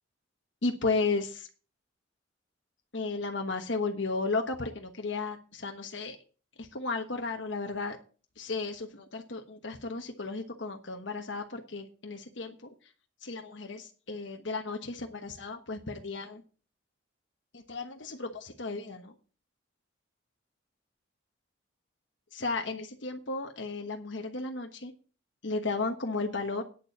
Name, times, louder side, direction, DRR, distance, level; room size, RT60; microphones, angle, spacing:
voice 1, 0.6-1.5 2.9-6.2 6.6-8.0 8.4-12.7 13.2-16.4 17.5-19.1 22.3-24.9 25.4-26.6, left 3 dB, 70° left, 4 dB, 1.2 m, -34 dB
9.3 x 6.8 x 7.1 m, 0.38 s
head